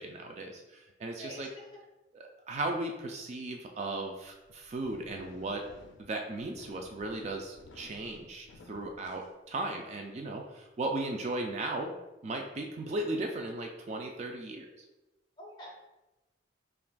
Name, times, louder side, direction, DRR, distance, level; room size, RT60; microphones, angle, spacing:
voice 1, 0.0-1.5 2.1-5.6 6.0-11.9 12.2-14.7, right 2 dB, 35° right, 2 dB, 0.3 m, -36 dB
voice 2, 1.2-1.8 15.4-15.8, equal, 25° left, -2 dB, 0.9 m, -47 dB
sound 1, 4.4-9.9, left 2 dB, 85° left, 0.4 m, -56 dB
5.7 x 2.4 x 2.2 m, 1.0 s
head